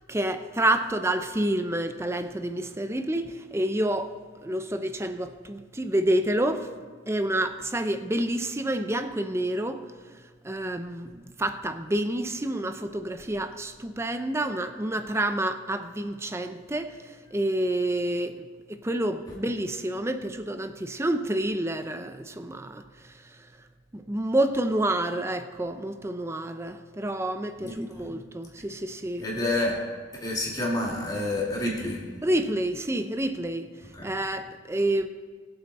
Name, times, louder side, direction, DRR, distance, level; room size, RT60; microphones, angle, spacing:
voice 1, 0.1-6.7 7.1-9.8 10.4-22.8 23.9-29.3 32.2-33.7 34.0-35.1, right 1 dB, 15° right, 0.6 m, -28 dB
voice 2, 27.6-28.1 29.2-29.8 30.2-32.0 33.9-34.1, left 1 dB, 20° left, 2.5 m, -29 dB
21.0 x 7.9 x 4.2 m
head